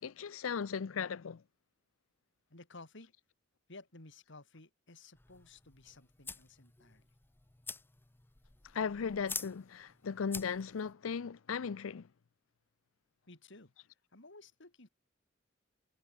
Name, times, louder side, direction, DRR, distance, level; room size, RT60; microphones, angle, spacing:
voice 1, 0.0-1.4 8.7-12.1, left 6 dB, 90° left, 0.5 m, -37 dB
voice 2, 2.5-3.1 3.7-7.1 13.3-14.9, left 2 dB, 65° left, 3.4 m, -55 dB
sound 1, 5.2-10.9, left 4 dB, 10° left, 0.5 m, -47 dB
head